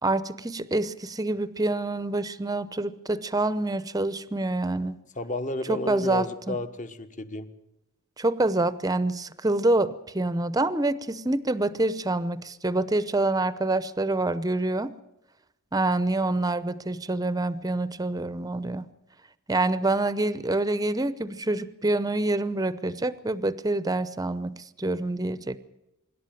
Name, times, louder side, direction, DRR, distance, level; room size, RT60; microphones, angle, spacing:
voice 1, 0.0-5.0 5.7-6.6 8.2-14.9 15.7-18.8 19.5-25.6, right 2 dB, 15° right, 15 dB, 0.7 m, -26 dB
voice 2, 5.2-7.5, left 1 dB, 35° left, 10 dB, 1.3 m, -32 dB
25.5 x 12.0 x 9.1 m, 0.91 s
head